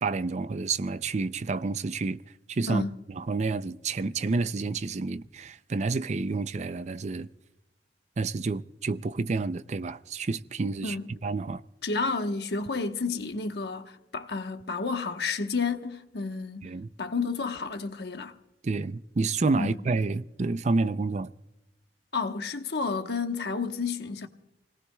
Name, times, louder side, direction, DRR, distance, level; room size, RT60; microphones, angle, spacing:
voice 1, 0.0-2.2 2.5-2.8 3.2-7.3 8.2-11.0 11.2-11.6 16.6-16.9 18.6-21.3, right 3 dB, 40° right, 0.4 m, -29 dB
voice 2, 10.8-11.1 11.8-16.7 17.0-18.3 19.6-19.8 22.1-24.3, left 4 dB, 65° left, 1.1 m, -31 dB
28.0 x 18.5 x 2.3 m
head